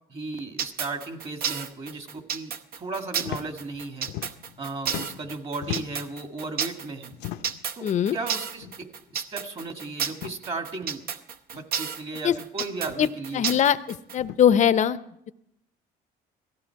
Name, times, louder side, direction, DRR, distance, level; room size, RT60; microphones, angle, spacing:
voice 1, 0.1-4.1 4.6-7.2 7.8-11.0 11.5-13.6, right 3 dB, 35° right, 5 dB, 2.0 m, -35 dB
sound 1, 0.6-14.2, right 7 dB, 65° right, 0.9 m, -31 dB
sound 2, 3.2-3.4 3.7-4.6 4.8-6.1 7.1-7.7 8.6-8.8 9.1-9.2 10.1-10.4 11.5-11.6 12.8-13.1 14.1-14.4, left 13 dB, 85° left, 0.7 m, -37 dB
voice 2, 7.8-8.2 12.2-12.3 13.0-13.1 13.3-13.8 14.1-15.0, left 9 dB, 45° left, 14 dB, 0.6 m, -20 dB
18.0 x 14.5 x 4.7 m, 0.81 s
cardioid pair, 110°, 17 cm